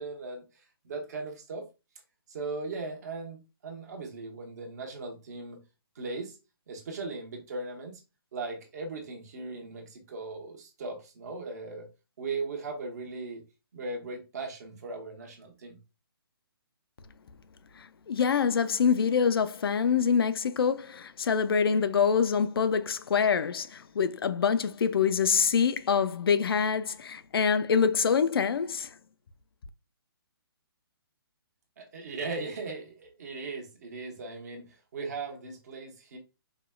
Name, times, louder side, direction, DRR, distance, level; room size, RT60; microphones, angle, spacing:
voice 1, 0.0-1.7 2.3-5.6 5.9-6.4 6.7-8.0 8.3-11.9 12.2-13.4 13.7-15.8 31.8-36.2, right 3 dB, 40° right, 1.0 m, -38 dB
voice 2, 17.8-28.9, left 6 dB, 70° left, 0.4 m, -25 dB
5.0 x 2.3 x 2.2 m
hypercardioid pair, 170°, 13 cm